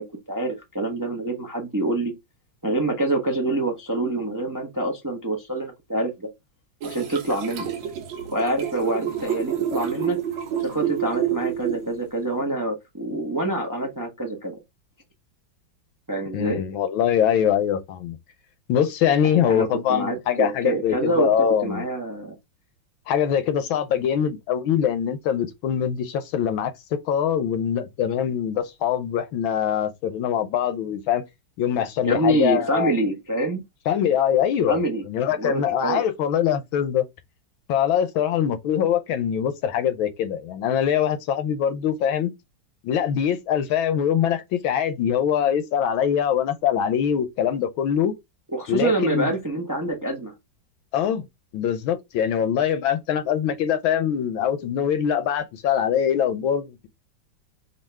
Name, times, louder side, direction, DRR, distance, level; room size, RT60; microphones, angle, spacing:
voice 1, 0.0-2.1 2.6-6.3 6.8-7.7 8.3-10.2 10.6-14.6 16.1-16.6 19.2-22.3 32.0-33.6 34.7-35.0 35.4-36.0 48.5-50.3, right 1 dB, 20° right, 0.5 m, -26 dB
sound 1, 6.8-12.2, right 9 dB, 75° right, 1.5 m, -28 dB
voice 2, 16.3-18.2 18.7-21.8 23.1-31.2 31.6-32.9 33.9-34.8 35.0-37.1 37.7-42.3 42.8-48.1 48.7-49.3 50.9-51.2 51.5-56.9, left 9 dB, 80° left, 1.5 m, -23 dB
5.4 x 2.8 x 3.4 m
omnidirectional pair, 2.2 m